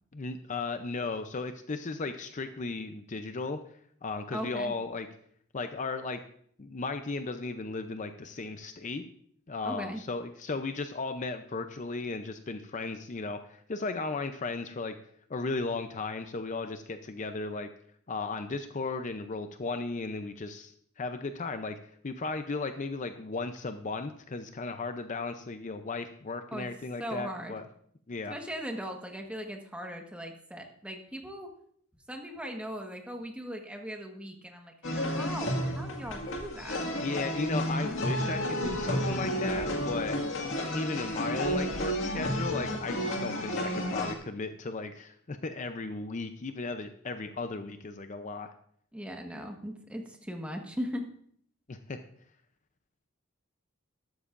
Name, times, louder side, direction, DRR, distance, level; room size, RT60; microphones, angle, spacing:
voice 1, 0.1-3.6 4.0-5.1 5.5-6.2 6.6-9.1 9.5-14.9 15.3-17.7 18.1-21.8 22.0-27.6 28.1-28.3 37.0-40.2 40.7-48.5 51.7-52.0, left 3 dB, 35° left, 8 dB, 0.6 m, -35 dB
voice 2, 4.3-4.7 9.6-10.0 26.5-26.7 27.0-27.5 28.3-31.5 32.1-36.8 48.9-51.1, equal, 5° right, 2 dB, 1.4 m, -39 dB
sound 1, 34.8-44.2, equal, 65° left, 2.0 m, -31 dB
13.0 x 12.5 x 2.5 m, 0.64 s
head